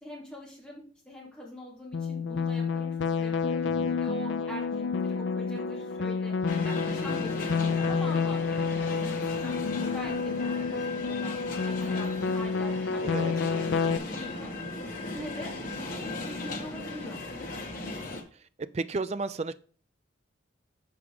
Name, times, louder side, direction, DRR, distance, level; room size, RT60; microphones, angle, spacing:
voice 1, 0.0-3.6 4.0-6.3 6.6-9.5 9.8-11.4 11.6-14.5 15.1-15.5 16.0-17.2, left 1 dB, 5° left, -5 dB, 2.7 m, -43 dB
Absolute Synth, 1.9-14.0, left 5 dB, 70° left, 0.5 m, -29 dB
voice 2, 3.6-4.0 13.0-13.3 18.6-19.5, right 3 dB, 35° right, 13 dB, 0.4 m, -33 dB
sound 1, 6.5-18.2, left 2 dB, 45° left, 1.5 m, -37 dB
7.0 x 5.0 x 4.8 m, 0.42 s
head